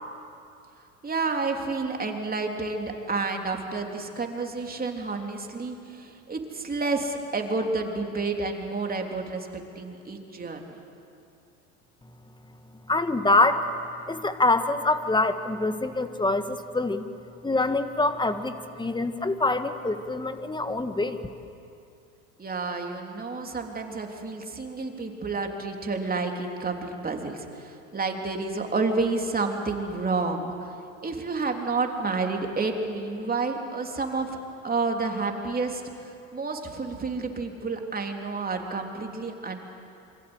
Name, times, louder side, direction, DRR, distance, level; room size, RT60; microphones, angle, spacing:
voice 1, 1.0-10.6 22.4-30.7 31.0-34.4 34.6-39.6, right 3 dB, 20° right, 2 dB, 3.5 m, -30 dB
voice 2, 12.9-13.7 14.1-17.0 17.4-21.2, left 2 dB, 10° left, 9 dB, 1.7 m, -25 dB
27.5 x 25.0 x 8.1 m, 2.5 s
hypercardioid pair, 75°, 42 cm